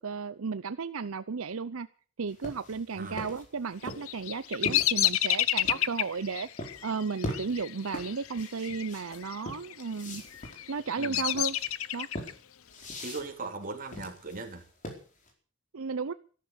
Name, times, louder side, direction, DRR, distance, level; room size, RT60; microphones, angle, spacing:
voice 1, 0.0-1.9 2.2-6.5 6.8-10.2 10.7-11.6 11.9-12.1 15.7-16.1, right 5 dB, 90° right, 13 dB, 0.7 m, -34 dB
sound 1, 2.3-5.9 6.6-6.8 7.2-15.3, equal, 40° left, 4.6 m, -41 dB
voice 2, 2.9-3.3 11.0-11.2 13.0-14.6, right 3 dB, 40° right, 3 dB, 3.3 m, -39 dB
Bird vocalization bird call bird song, 3.8-8.9 9.1-9.7 10.3-12.3, left 13 dB, 85° left, 0.7 m, -30 dB
14.0 x 13.0 x 7.1 m, 0.41 s
head